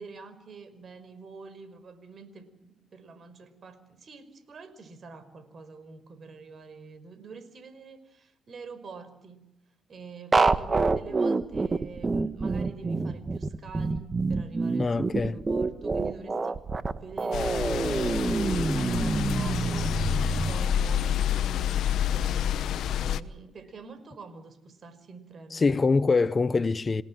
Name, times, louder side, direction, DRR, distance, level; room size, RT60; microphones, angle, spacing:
voice 1, 0.0-9.4 9.9-19.9 20.2-22.5 23.0-25.8, right 4 dB, 50° right, 5.3 m, -46 dB
sound 1, 10.3-20.5, right 3 dB, 30° right, 1.4 m, -27 dB
voice 2, 14.8-15.4 25.5-27.0, left 4 dB, 30° left, 0.9 m, -24 dB
sound 2, 17.3-23.2, left 9 dB, 75° left, 1.0 m, -28 dB
28.5 x 18.0 x 7.6 m
cardioid pair, 90°, 0 cm